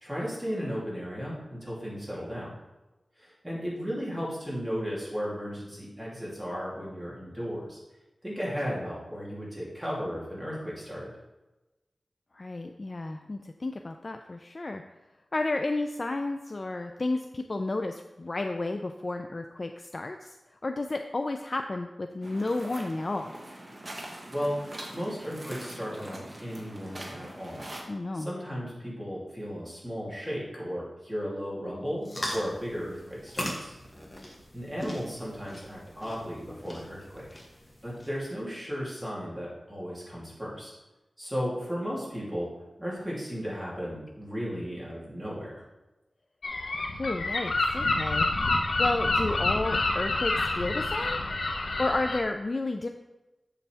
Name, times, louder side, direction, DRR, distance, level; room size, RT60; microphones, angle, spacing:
voice 1, 0.0-2.6 3.2-7.8 8.2-11.1 24.3-27.6 28.1-33.7 34.5-37.3 37.8-40.7 41.2-42.5 42.8-45.6, equal, 5° right, -7 dB, 2.8 m, -35 dB
voice 2, 12.3-14.8 15.3-20.4 20.6-23.3 27.9-28.3 47.0-48.3 48.8-51.2 51.8-52.9, left 2 dB, 40° left, 5 dB, 0.4 m, -32 dB
sound 1, 22.2-27.8, right 1 dB, 30° right, 1.3 m, -43 dB
sound 2, 32.0-38.3, left 1 dB, 25° left, 1.4 m, -40 dB
Gull seagull, 46.4-52.2, left 2 dB, 80° left, 0.8 m, -28 dB
7.2 x 6.9 x 3.4 m, 1.0 s
wide cardioid pair, 100°, 0 cm